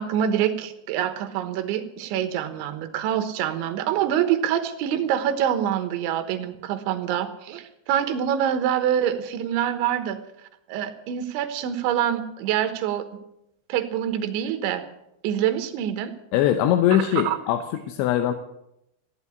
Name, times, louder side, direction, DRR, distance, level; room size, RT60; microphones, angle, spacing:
voice 1, 0.0-10.2 10.7-13.1 13.7-14.9 15.2-16.1 16.9-17.4, right 10 dB, 75° right, 9 dB, 3.4 m, -25 dB
voice 2, 16.3-18.3, left 11 dB, 75° left, 7 dB, 3.1 m, -21 dB
15.5 x 10.5 x 8.4 m, 0.83 s
omnidirectional pair, 5.7 m